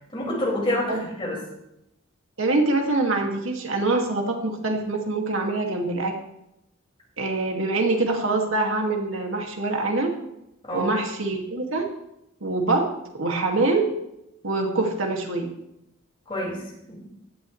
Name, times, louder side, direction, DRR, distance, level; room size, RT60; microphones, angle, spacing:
voice 1, 0.1-1.4 10.7-11.0 16.3-16.6 16.9-17.0, left 1 dB, 25° left, -4 dB, 5.3 m, -27 dB
voice 2, 2.4-6.1 7.2-10.1 10.7-11.9 12.4-12.9 13.1-13.9 14.4-15.5, right 2 dB, 75° right, 1 dB, 2.2 m, -24 dB
16.5 x 12.0 x 3.2 m, 0.83 s
head